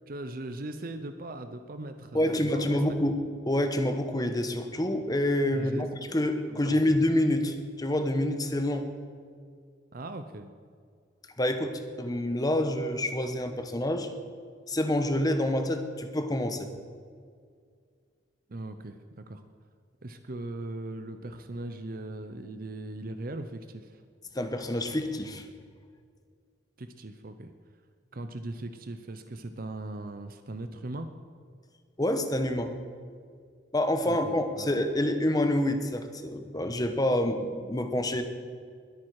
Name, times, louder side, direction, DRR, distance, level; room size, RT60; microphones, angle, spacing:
voice 1, 0.1-2.8 5.5-5.8 6.5-6.8 9.9-10.5 18.5-19.4 20.0-24.0 26.8-27.5 28.1-31.1 34.1-34.7, right 2 dB, 50° right, 9 dB, 0.7 m, -39 dB
voice 2, 2.1-8.9 11.4-14.1 14.7-16.7 24.3-25.5 32.0-32.7 33.7-38.2, left 1 dB, 20° left, 7 dB, 1.1 m, -27 dB
21.0 x 8.8 x 4.8 m, 2.1 s
head